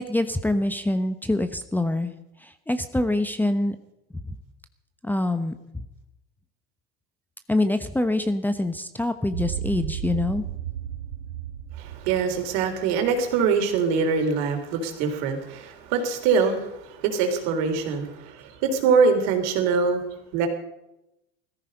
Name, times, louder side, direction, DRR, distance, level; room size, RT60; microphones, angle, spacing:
voice 1, 0.0-2.1 2.4-3.8 4.2-4.4 5.0-5.9 7.5-10.4, left 1 dB, 5° left, 10 dB, 1.0 m, -25 dB
sound 1, 9.3-13.7, right 10 dB, 90° right, 1.4 m, -34 dB
voice 2, 11.8-20.0 20.3-20.5, right 5 dB, 65° right, 5 dB, 3.6 m, -23 dB
16.0 x 14.0 x 5.4 m, 0.88 s
supercardioid pair, 100°, 30 cm